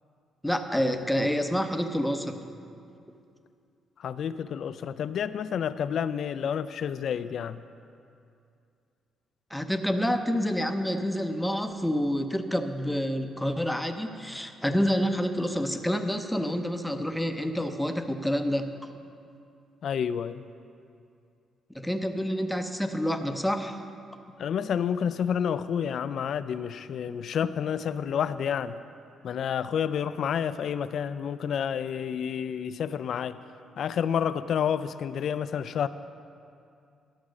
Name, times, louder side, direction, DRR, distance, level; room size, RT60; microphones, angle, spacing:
voice 1, 0.4-2.5 9.5-18.7 21.7-23.8, equal, 5° left, 6 dB, 0.7 m, -28 dB
voice 2, 4.0-7.6 19.8-20.4 24.4-28.8 29.2-33.4 33.8-35.9, left 8 dB, 65° left, 13 dB, 0.3 m, -29 dB
11.5 x 6.0 x 6.3 m, 2.5 s
cardioid pair, 90°, 0 cm